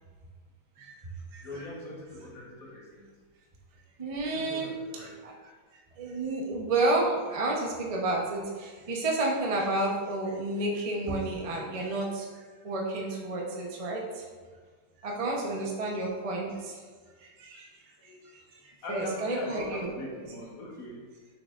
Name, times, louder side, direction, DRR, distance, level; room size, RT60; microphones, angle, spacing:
voice 1, 1.4-3.1 4.2-5.2 15.1-15.5 18.0-18.2 18.8-21.1, left 1 dB, 45° left, -3 dB, 1.5 m, -41 dB
voice 2, 4.0-14.2 15.0-16.8 17.2-17.8 18.3-20.2, right 2 dB, 60° right, -2 dB, 0.3 m, -31 dB
6.6 x 5.8 x 2.5 m, 1.5 s
omnidirectional pair, 2.3 m